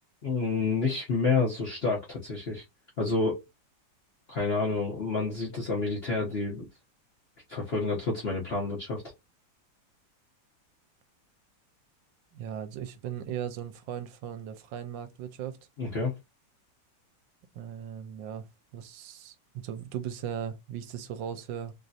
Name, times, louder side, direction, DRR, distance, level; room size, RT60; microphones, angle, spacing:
voice 1, 0.2-2.6 3.0-3.4 4.3-6.7 7.5-9.0 15.8-16.1, left 3 dB, 50° left, 0.7 m, -29 dB
voice 2, 12.3-15.6 17.5-18.5 18.7-21.7, right 9 dB, 80° right, 1.3 m, -37 dB
3.2 x 2.6 x 2.4 m
omnidirectional pair, 2.1 m